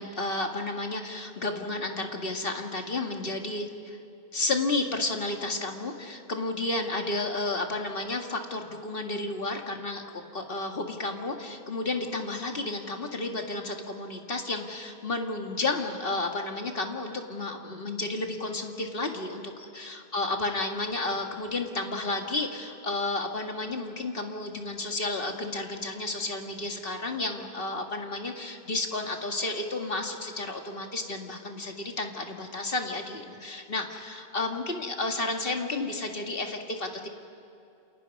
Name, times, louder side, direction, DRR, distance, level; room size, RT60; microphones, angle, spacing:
voice 1, 0.0-4.0 4.3-10.0 10.3-37.1, left 2 dB, 60° left, 3 dB, 2.1 m, -32 dB
29.0 x 28.0 x 5.4 m, 2.6 s
omnidirectional pair, 1.1 m